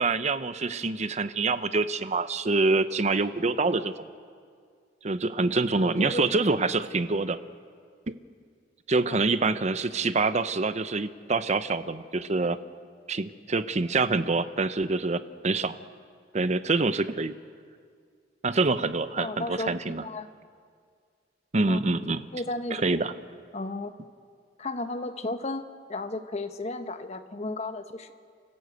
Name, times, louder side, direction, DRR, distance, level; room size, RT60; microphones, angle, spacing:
voice 1, 0.0-3.9 5.0-7.4 8.1-8.2 8.9-12.6 13.1-15.8 16.3-17.3 18.4-20.0 21.5-22.2 22.7-23.1, right 3 dB, 40° right, 12 dB, 0.8 m, -26 dB
voice 2, 5.7-6.4 9.1-9.2 19.2-20.3 21.7-21.8 22.3-22.8 23.5-23.9 24.6-25.6 25.9-28.1, left 2 dB, 40° left, 9 dB, 1.1 m, -34 dB
29.0 x 14.0 x 8.1 m, 2.1 s
head